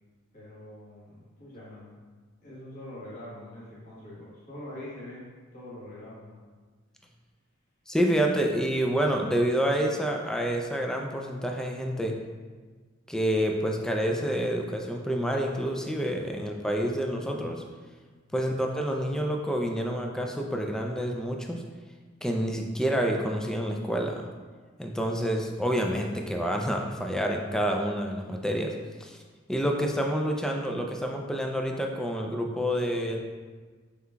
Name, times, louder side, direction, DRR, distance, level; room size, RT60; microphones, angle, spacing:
voice 1, 0.3-1.9 2.4-6.4 18.3-18.6, left 1 dB, 40° left, -9 dB, 1.2 m, -44 dB
voice 2, 7.9-12.1 13.1-17.6 18.3-21.6 22.2-24.2 24.8-28.7 29.0-29.2 29.5-33.2, equal, 5° left, 1 dB, 0.3 m, -28 dB
5.6 x 3.4 x 2.2 m, 1.4 s
head